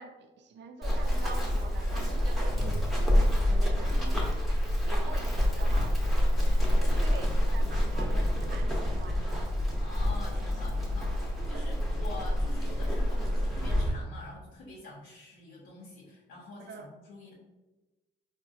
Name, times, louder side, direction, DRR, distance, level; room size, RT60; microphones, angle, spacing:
voice 1, 0.0-4.2 4.9-6.2 6.6-9.4 11.5-11.7 16.7-16.9, right 4 dB, 60° right, 5 dB, 0.5 m, -45 dB
Run, 0.8-13.9, equal, ahead, 0.7 m, -27 dB
sound 1, 3.7-11.7, left 3 dB, 20° left, 0.3 m, -40 dB
voice 2, 3.9-4.4 4.9-5.2 6.8-7.2 9.8-17.3, left 2 dB, 85° left, -6 dB, 0.7 m, -46 dB
3.8 x 2.1 x 2.5 m, 1.1 s
cardioid pair, 90°, 20 cm